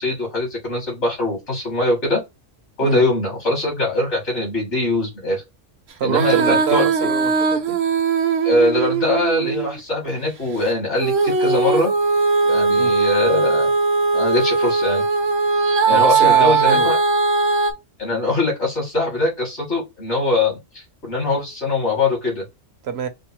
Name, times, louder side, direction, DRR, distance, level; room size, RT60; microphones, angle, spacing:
voice 1, 0.0-2.2 2.8-5.4 6.0-7.1 8.4-11.9 12.4-13.7 14.1-15.0 15.9-17.0 18.0-22.4, left 2 dB, 65° left, 2.5 m, -22 dB
voice 2, 6.0-7.8 12.7-13.0 15.9-16.9 22.8-23.1, right 8 dB, 60° right, 1.0 m, -25 dB
Female singing, 6.0-9.8 11.0-17.7, right 4 dB, 90° right, 1.2 m, -19 dB
4.9 x 2.0 x 4.4 m
omnidirectional pair, 1.3 m